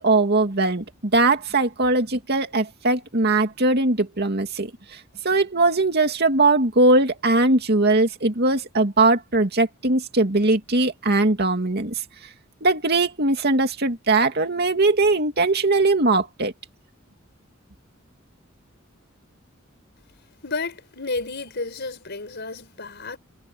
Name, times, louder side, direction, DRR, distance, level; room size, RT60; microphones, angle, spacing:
voice 1, 0.0-4.7 5.2-11.9 12.6-16.5, right 2 dB, 50° right, 2.5 m, -20 dB
voice 2, 20.4-23.2, left 3 dB, 55° left, 5.1 m, -31 dB
head